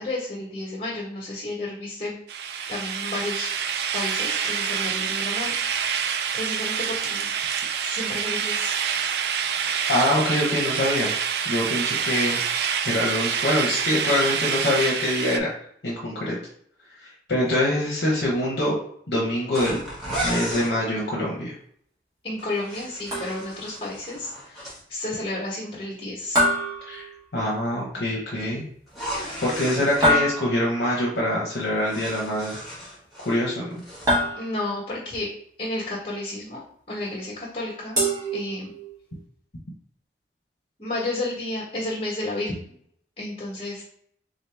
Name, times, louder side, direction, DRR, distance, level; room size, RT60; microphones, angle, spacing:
voice 1, 0.0-2.2 2.7-3.5 3.9-5.6 5.9-7.3 7.8-8.7 22.2-26.4 28.4-28.6 34.3-35.3 35.6-36.6 36.9-38.0 38.3-38.7 40.8-42.5 43.2-44.0, left 2 dB, 30° left, -5 dB, 1.2 m, -32 dB
sound 1, 2.3-15.4, right 7 dB, 65° right, 0.3 m, -27 dB
voice 2, 9.9-11.1 11.5-12.4 12.8-15.5 15.8-16.4 17.0-18.8 19.1-19.8 20.2-21.5 26.8-27.1 27.3-28.6 29.4-32.6 33.3-33.7, left 1 dB, 70° left, -4 dB, 0.8 m, -24 dB
sound 2, 19.5-20.7 22.4-24.8 28.9-30.1 31.5-33.4 33.7-34.2, equal, ahead, 1.4 m, -34 dB
sound 3, 23.1-23.7 26.4-27.6 30.0-30.9 34.1-34.9 38.0-39.0, equal, 20° right, 1.3 m, -25 dB
3.8 x 2.9 x 3.4 m, 0.65 s
head